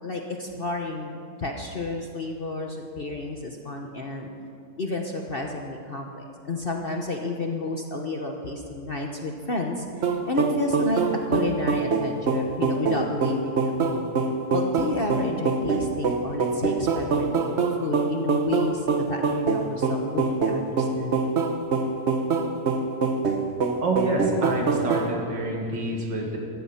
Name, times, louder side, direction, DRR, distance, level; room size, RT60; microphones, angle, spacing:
voice 1, 0.0-4.3 4.8-14.1 14.5-21.2, left 2 dB, 40° left, 2 dB, 1.0 m, -31 dB
sound 1, 10.0-25.1, right 4 dB, 45° right, 1.1 m, -25 dB
voice 2, 23.8-26.4, right 2 dB, 80° right, 0 dB, 2.7 m, -27 dB
15.5 x 13.5 x 5.8 m, 2.4 s
omnidirectional pair, 1.9 m